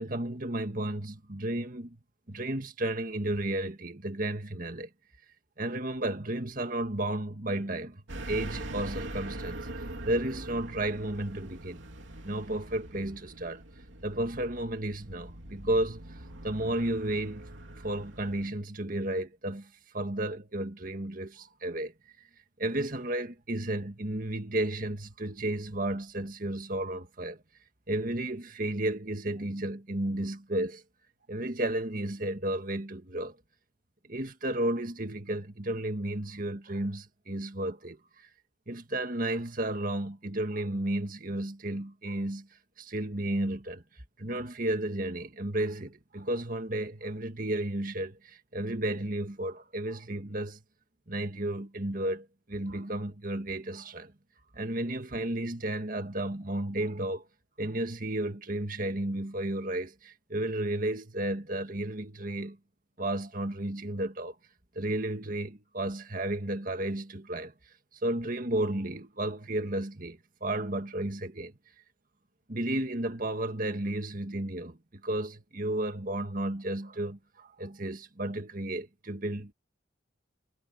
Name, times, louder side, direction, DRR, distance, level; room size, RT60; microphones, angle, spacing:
voice 1, 0.0-2.0 2.3-4.9 5.6-8.0 8.3-9.7 10.0-11.9 12.2-13.6 14.0-16.2 16.4-17.4 17.8-21.9 22.6-27.4 27.9-30.8 31.3-33.4 34.1-38.3 38.7-42.5 42.8-43.8 44.2-50.6 51.1-54.1 54.6-57.3 57.6-62.6 63.0-64.4 64.8-67.5 68.0-71.5 72.5-74.8 75.0-79.5, right 1 dB, 45° right, 1.9 m, -33 dB
sound 1, 8.1-18.5, right 1 dB, 80° right, 3.1 m, -43 dB
head